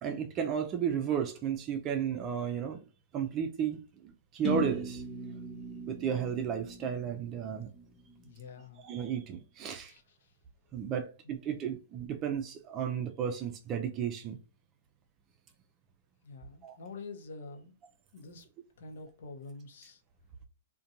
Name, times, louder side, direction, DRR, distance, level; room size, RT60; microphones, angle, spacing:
voice 1, 0.0-2.8 3.1-5.0 5.9-7.7 8.8-9.9 10.7-14.4 16.6-16.8, right 8 dB, 30° right, 0.4 m, -33 dB
sound 1, 4.4-8.3, equal, 10° left, 0.8 m, -39 dB
voice 2, 8.1-8.8 9.8-10.3 10.7-11.7 16.2-17.7 18.1-18.5 18.8-20.0, left 3 dB, 65° left, 0.7 m, -48 dB
2.6 x 2.1 x 2.7 m
hypercardioid pair, 125°, 0 cm